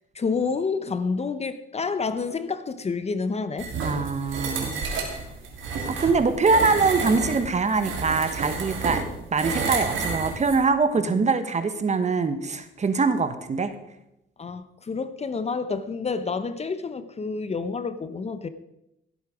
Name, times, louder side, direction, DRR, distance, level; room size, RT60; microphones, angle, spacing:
voice 1, 0.1-3.7 11.0-11.3 14.4-18.5, left 4 dB, 30° left, 0.9 m, -29 dB
sound 1, 3.6-10.6, right 4 dB, 75° right, 3.0 m, -30 dB
voice 2, 3.8-4.9 5.8-9.0 9.3-13.7, right 4 dB, 35° right, 1.3 m, -23 dB
16.5 x 8.2 x 5.0 m
cardioid pair, 90°, 20 cm